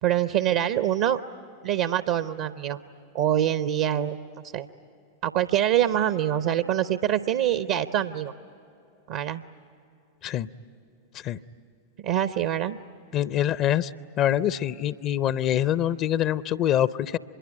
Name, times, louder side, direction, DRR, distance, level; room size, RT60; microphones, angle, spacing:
voice 1, 0.0-1.2 1.6-2.8 3.1-4.2 4.5-4.7 5.2-8.3 9.1-9.4 12.0-12.8, right 11 dB, 50° right, 13 dB, 0.7 m, -25 dB
voice 2, 13.1-13.9 14.2-17.2, left 11 dB, 35° left, 17 dB, 0.6 m, -24 dB
26.0 x 22.5 x 10.0 m, 2.7 s
figure-of-eight pair, 90°, 0 cm